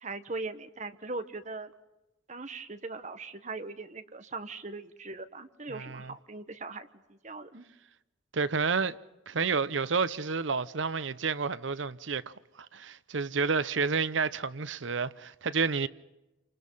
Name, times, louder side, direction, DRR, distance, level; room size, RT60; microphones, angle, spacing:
voice 1, 0.0-1.7 2.3-7.6, right 3 dB, 40° right, 1.3 m, -40 dB
voice 2, 5.7-6.1 8.3-9.0 9.3-12.3 12.7-15.9, right 5 dB, 85° right, 0.8 m, -30 dB
28.5 x 26.0 x 5.6 m
head